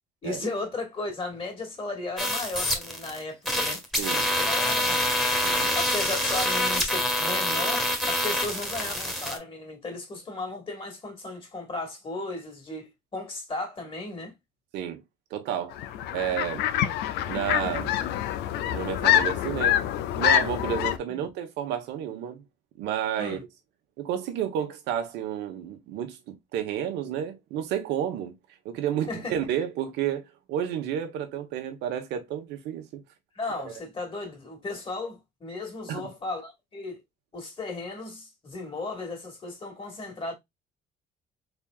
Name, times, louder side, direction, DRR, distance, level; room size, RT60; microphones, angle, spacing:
voice 1, 0.2-3.8 4.4-5.1 5.7-14.3 21.1-21.2 23.2-23.4 29.1-29.4 33.3-37.0 37.3-40.3, left 2 dB, 30° left, 2.2 m, -35 dB
sound 1, 2.2-3.2 3.5-9.4, equal, ahead, 1.5 m, -26 dB
voice 2, 4.0-4.3 5.4-5.7 14.7-15.0 15.3-15.8 16.1-16.6 17.3-17.9 18.7-19.8 20.2-22.4 22.8-23.4 24.0-28.3 28.6-33.0 35.9-36.0, right 9 dB, 90° right, 1.3 m, -31 dB
sound 2, 15.7-21.0, left 11 dB, 90° left, 0.6 m, -25 dB
4.2 x 3.5 x 2.4 m
cardioid pair, 110°, 17 cm